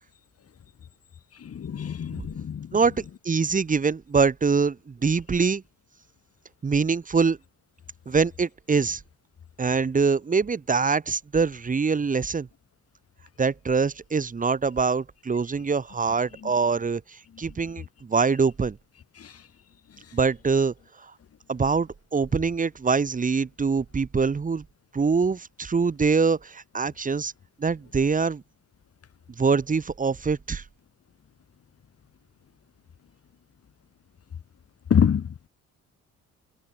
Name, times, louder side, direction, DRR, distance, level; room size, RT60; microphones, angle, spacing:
voice 1, 1.4-2.7 16.4-16.5 19.2-19.3 34.9-35.3, left 8 dB, 50° left, 4.8 m, -25 dB
voice 2, 3.2-5.6 6.6-7.4 8.1-9.0 9.6-12.5 13.4-17.0 17.4-18.8 20.1-20.7 21.5-24.6 24.9-27.3 27.6-28.4 29.4-30.6, right 5 dB, 25° right, 1.2 m, -24 dB
cardioid pair, 90°, 30 cm